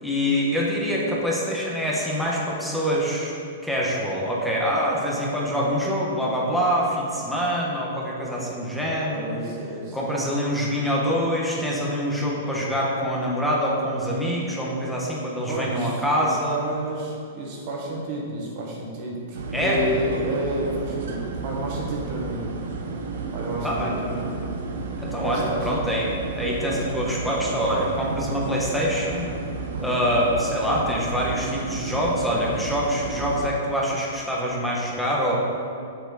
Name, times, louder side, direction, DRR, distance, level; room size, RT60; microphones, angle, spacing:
voice 1, 0.0-3.3 3.6-9.3 9.9-16.6 19.5-19.8 23.6-23.9 25.0-29.3 29.8-35.3, equal, ahead, -5 dB, 1.0 m, -25 dB
voice 2, 9.1-10.0 15.5-22.4 23.3-24.3 25.2-25.7 29.6-30.2, right 1 dB, 40° right, -2 dB, 1.6 m, -31 dB
sound 1, 19.3-33.5, right 4 dB, 70° right, 0.9 m, -32 dB
7.0 x 6.8 x 4.0 m, 2.4 s
hypercardioid pair, 160°, 0 cm